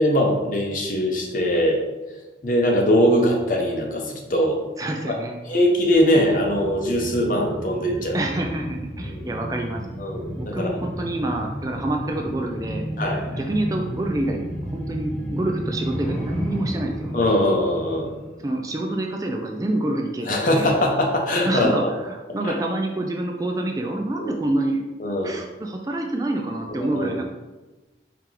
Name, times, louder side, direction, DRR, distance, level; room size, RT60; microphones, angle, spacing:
voice 1, 0.0-1.8 2.4-4.6 5.1-5.2 5.5-8.2 9.0-9.3 10.0-10.8 13.0-13.4 17.1-18.1 20.3-21.9 22.4-22.6 24.2-24.4 25.0-25.4 26.7-27.1, equal, 50° left, 1 dB, 0.7 m, -21 dB
voice 2, 4.8-5.6 8.1-9.8 10.4-12.9 13.4-17.1 18.4-20.7 21.4-24.8 25.2-27.2, right 1 dB, 20° right, 2 dB, 0.3 m, -27 dB
sound 1, 5.8-19.0 19.3-19.4, equal, 5° left, 0.7 m, -32 dB
4.6 x 2.9 x 3.8 m, 1.2 s
head